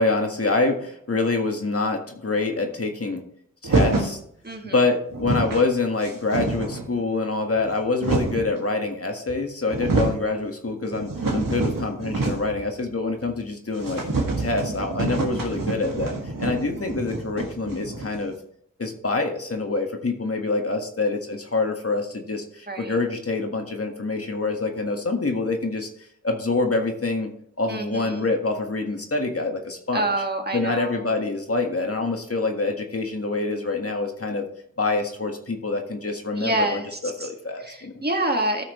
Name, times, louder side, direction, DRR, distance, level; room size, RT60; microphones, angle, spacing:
voice 1, 0.0-3.3 3.6-4.2 4.6-14.0 14.4-18.4 18.8-25.9 26.2-27.3 27.6-30.1 30.5-34.5 34.8-37.9, left 3 dB, 45° left, 3 dB, 1.6 m, -26 dB
sound 1, 3.6-4.2 4.8-4.9 5.1-5.7 6.0-6.9 7.6-8.5 9.3-9.4 9.6-10.3 10.7-12.6 12.9-13.0 13.3-13.4 13.8-18.3, right 3 dB, 85° right, 1.6 m, -26 dB
voice 2, 27.7-28.3 29.9-31.0 36.4-37.3 37.6-38.6, right 1 dB, 30° right, 3 dB, 1.8 m, -27 dB
14.0 x 6.0 x 3.1 m, 0.67 s
cardioid pair, 45°, 32 cm